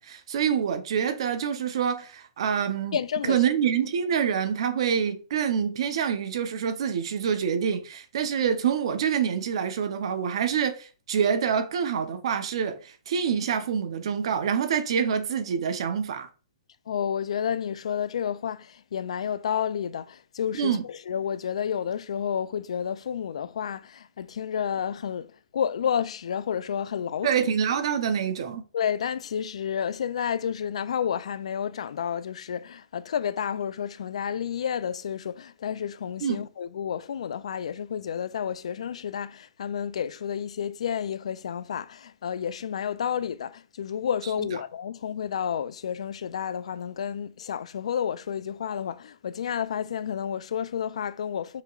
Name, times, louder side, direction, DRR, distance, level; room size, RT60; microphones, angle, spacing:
voice 1, 0.0-3.0 3.3-16.3 20.6-20.8 27.2-28.6 36.2-36.5, right 7 dB, 60° right, 0.7 m, -26 dB
voice 2, 2.9-3.4 16.9-27.3 28.7-51.6, left 8 dB, 75° left, 0.3 m, -30 dB
5.7 x 3.0 x 2.4 m
hypercardioid pair, 150°, 3 cm